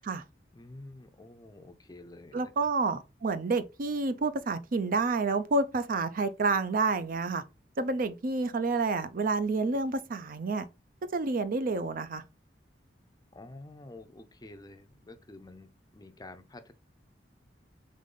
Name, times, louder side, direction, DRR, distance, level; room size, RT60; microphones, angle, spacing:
voice 1, 0.5-2.5 13.3-16.7, left 2 dB, 20° left, 0.5 m, -49 dB
voice 2, 2.3-7.4 7.8-10.7 11.1-12.2, right 3 dB, 50° right, 0.5 m, -29 dB
3.8 x 3.6 x 3.7 m
head